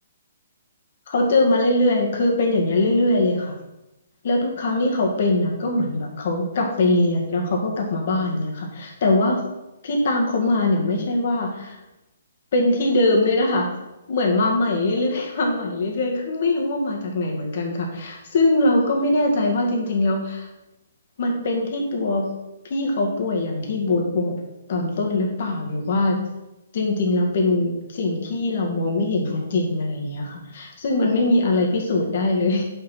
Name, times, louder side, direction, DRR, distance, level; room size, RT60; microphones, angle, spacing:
voice 1, 1.1-3.5 4.2-9.5 9.8-11.8 12.5-13.7 14.1-20.5 21.2-22.2 22.7-24.4 24.7-26.2 26.7-32.6, left 2 dB, 55° left, 0 dB, 2.0 m, -22 dB
5.7 x 5.6 x 6.0 m, 0.95 s
hypercardioid pair, 150°, 0 cm